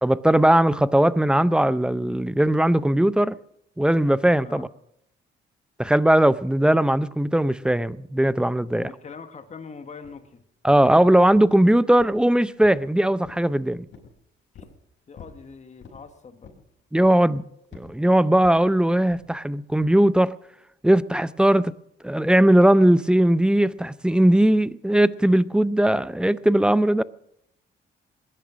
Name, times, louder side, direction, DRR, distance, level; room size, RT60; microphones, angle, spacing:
voice 1, 0.0-3.4 3.8-4.7 5.8-8.9 10.6-13.9 16.9-17.4 17.7-20.3 20.8-21.7 22.0-27.0, right 1 dB, 5° right, 0.5 m, -19 dB
voice 2, 8.7-10.4 15.1-16.5, left 5 dB, 35° left, 1.6 m, -42 dB
sound 1, 10.0-10.2 10.7-11.0 11.3-11.6 12.0-12.9 13.2-13.5 13.9-14.2 14.5-14.8 15.2-15.4 15.8-16.0 16.4-16.7 17.0-17.3 17.7-17.9 18.4-18.7 19.1-19.3 19.8-20.0, left 6 dB, 70° left, 5.4 m, -47 dB
20.0 x 11.0 x 6.2 m
cardioid pair, 90°, 20 cm